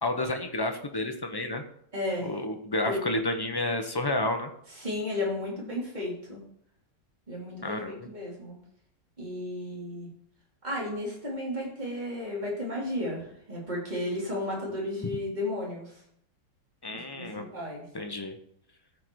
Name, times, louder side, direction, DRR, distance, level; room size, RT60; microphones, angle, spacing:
voice 1, 0.0-1.6 2.2-4.5 7.6-8.1 16.8-17.5 17.9-18.4, left 2 dB, 20° left, 5 dB, 0.6 m, -30 dB
voice 2, 1.9-2.3 2.8-3.0 4.8-6.4 7.3-8.5 9.2-10.1 10.6-15.9 17.1-17.8, left 1 dB, 25° right, -4 dB, 3.3 m, -33 dB
14.5 x 5.1 x 4.7 m, 0.69 s
omnidirectional pair, 1.8 m